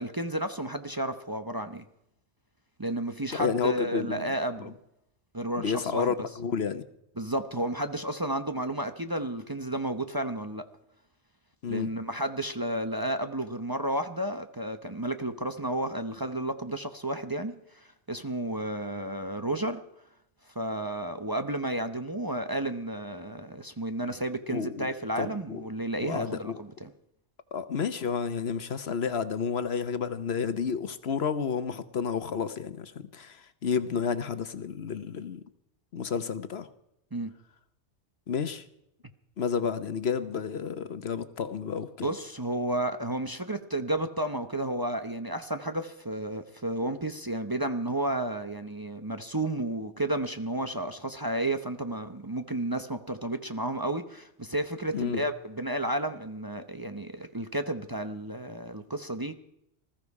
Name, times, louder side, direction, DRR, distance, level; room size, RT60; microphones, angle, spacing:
voice 1, 0.0-1.8 2.8-4.7 5.3-6.1 7.2-10.6 11.7-19.8 20.5-26.9 37.1-37.3 42.0-59.3, right 1 dB, 20° right, 8 dB, 0.9 m, -32 dB
voice 2, 3.3-4.3 4.6-4.7 5.6-6.8 11.6-11.9 24.5-24.9 25.2-25.6 26.0-26.6 27.5-35.4 35.9-36.7 38.3-38.6 39.4-42.1 54.9-55.2, left 6 dB, 65° left, 12 dB, 1.2 m, -31 dB
20.0 x 14.5 x 4.8 m, 0.79 s
omnidirectional pair, 1.1 m